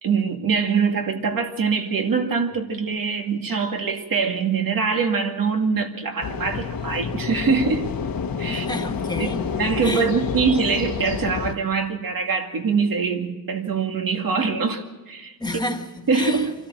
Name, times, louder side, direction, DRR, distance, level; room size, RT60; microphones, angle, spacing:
voice 1, 0.0-7.9 8.4-8.7 9.2-9.3 9.6-15.3 16.1-16.5, right 5 dB, 65° right, 2.3 m, -23 dB
sound 1, 6.2-11.6, left 6 dB, 70° left, 1.2 m, -28 dB
voice 2, 8.5-9.4 9.8-10.1 15.4-16.5, left 1 dB, 10° left, 1.7 m, -30 dB
26.5 x 13.5 x 7.5 m
wide cardioid pair, 120°, 36 cm